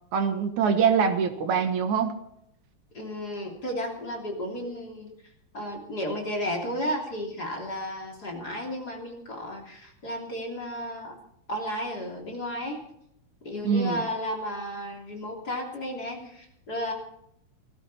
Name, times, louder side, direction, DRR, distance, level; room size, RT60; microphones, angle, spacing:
voice 1, 0.1-2.2 13.6-14.0, right 6 dB, 75° right, 7 dB, 2.8 m, -24 dB
voice 2, 2.9-5.1 5.5-11.1 11.5-12.8 13.4-16.9, equal, 30° left, 0 dB, 3.4 m, -33 dB
18.5 x 15.0 x 4.2 m, 0.75 s
omnidirectional pair, 3.6 m